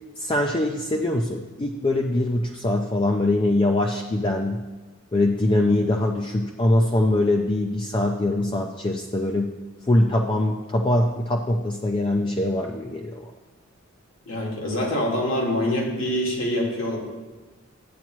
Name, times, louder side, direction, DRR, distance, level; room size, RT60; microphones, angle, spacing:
voice 1, 0.2-4.7 5.1-9.6 9.9-13.3, left 1 dB, 25° left, 1 dB, 0.4 m, -23 dB
voice 2, 14.3-17.0, left 1 dB, 75° left, -2 dB, 2.0 m, -25 dB
12.0 x 8.3 x 3.1 m, 1.2 s
head